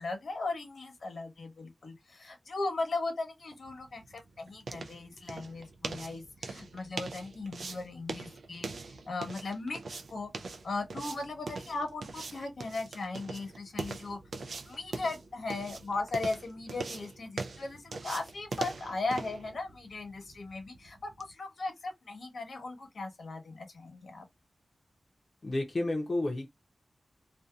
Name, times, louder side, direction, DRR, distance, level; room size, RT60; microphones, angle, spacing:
voice 1, 0.0-14.2 14.7-24.2, left 3 dB, 75° left, 1.1 m, -37 dB
sound 1, 3.5-21.3, right 3 dB, 85° right, 0.4 m, -42 dB
voice 2, 25.4-26.5, left 2 dB, 40° left, 0.7 m, -31 dB
2.7 x 2.4 x 2.3 m
wide cardioid pair, 125°, 0 cm